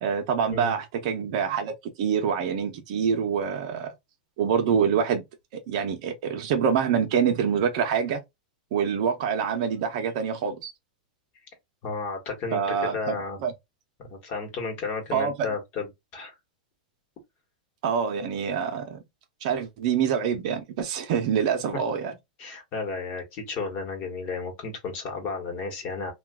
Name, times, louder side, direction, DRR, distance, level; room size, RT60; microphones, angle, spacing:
voice 1, 0.0-3.9 4.4-5.2 5.5-8.2 8.7-10.7 12.5-13.5 15.1-15.5 17.8-19.0 19.4-22.1, right 7 dB, 50° right, 0.7 m, -26 dB
voice 2, 11.8-13.4 14.0-16.3 22.4-26.1, left 4 dB, 35° left, 1.2 m, -33 dB
2.6 x 2.3 x 3.5 m
supercardioid pair, 160°, 5 cm